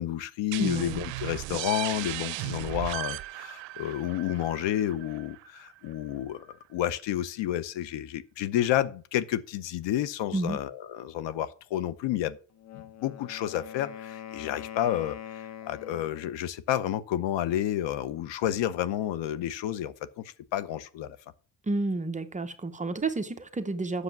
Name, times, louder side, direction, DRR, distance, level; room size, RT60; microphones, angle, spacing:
voice 1, 0.0-12.4 12.7-21.2, left 12 dB, 75° left, 0.8 m, -30 dB
sound 1, 0.5-6.0, right 17 dB, 75° right, 0.6 m, -36 dB
voice 2, 0.6-1.0 10.3-10.6 21.7-24.0, right 2 dB, 15° right, 0.7 m, -30 dB
Wind instrument woodwind instrument, 12.5-16.3, left 10 dB, 40° left, 0.8 m, -43 dB
8.2 x 6.5 x 5.9 m
cardioid pair, 135°, 44 cm